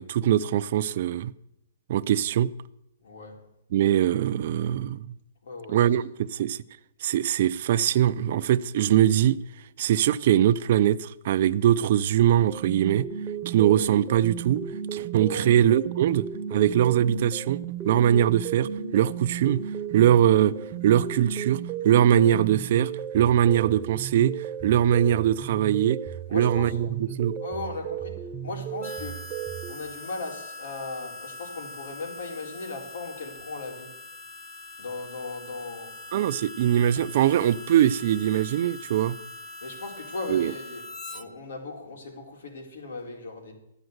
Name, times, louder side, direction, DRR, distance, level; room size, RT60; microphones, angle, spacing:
voice 1, 0.0-1.3 1.9-2.5 3.7-5.2 5.7-6.6 7.0-9.4 9.8-13.1 13.5-14.6 14.9-17.6 17.9-19.7 19.9-20.5 20.8-21.6 21.8-24.3 24.6-26.0 26.3-27.4 36.1-39.2 40.3-40.5, right 11 dB, 45° right, 0.5 m, -22 dB
voice 2, 3.0-3.4 5.4-5.9 15.3-15.5 26.3-26.8 27.4-29.3 29.7-34.0 34.8-36.0 39.6-40.9 41.1-43.5, left 3 dB, 80° left, 4.0 m, -37 dB
sound 1, 12.4-29.7, right 8 dB, 15° right, 0.8 m, -34 dB
Harmonica, 28.8-41.2, left 3 dB, 10° left, 0.9 m, -42 dB
14.0 x 9.1 x 8.0 m
hypercardioid pair, 170°, 0 cm